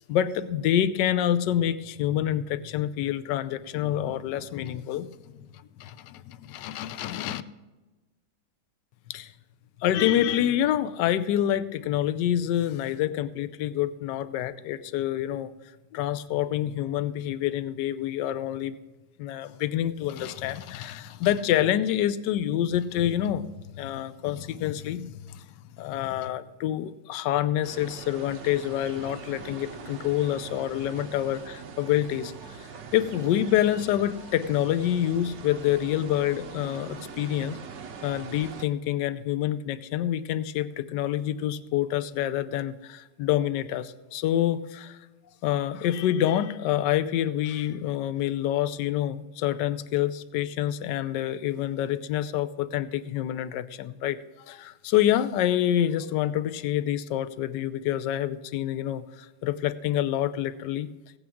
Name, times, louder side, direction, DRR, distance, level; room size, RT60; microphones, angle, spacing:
voice 1, 0.1-5.1 5.8-7.4 9.1-9.3 9.8-15.5 15.9-18.8 19.2-25.5 25.8-37.6 38.0-45.0 45.4-60.9, left 11 dB, 75° left, 14 dB, 1.2 m, -27 dB
sound 1, 27.6-38.7, right 5 dB, 50° right, 0.9 m, -42 dB
16.5 x 8.7 x 3.6 m, 1.2 s
omnidirectional pair, 2.0 m